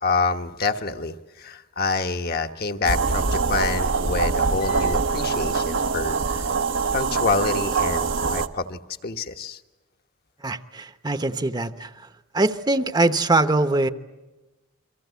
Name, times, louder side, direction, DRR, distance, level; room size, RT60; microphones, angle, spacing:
voice 1, 0.0-6.5 6.9-9.6, left 4 dB, 50° left, 5 dB, 1.2 m, -27 dB
sound 1, 2.9-8.5, right 4 dB, 65° right, 1.0 m, -24 dB
voice 2, 10.4-12.1 12.3-13.9, right 2 dB, 20° right, 10 dB, 0.9 m, -22 dB
29.0 x 24.0 x 8.2 m, 1.1 s
head